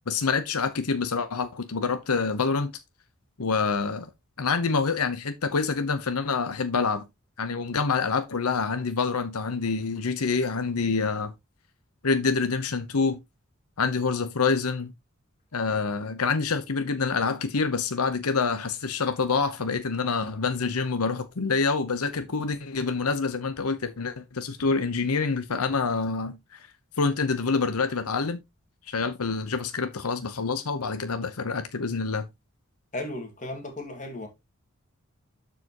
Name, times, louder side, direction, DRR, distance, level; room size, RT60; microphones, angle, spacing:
voice 1, 0.1-2.7 3.4-4.1 4.4-7.0 7.4-11.3 12.0-13.2 13.8-14.9 15.5-26.7 27.0-28.4 28.9-32.3, left 4 dB, 85° left, 0.9 m, -26 dB
voice 2, 32.9-34.3, left 1 dB, 35° left, 2.1 m, -35 dB
12.5 x 4.9 x 3.0 m
head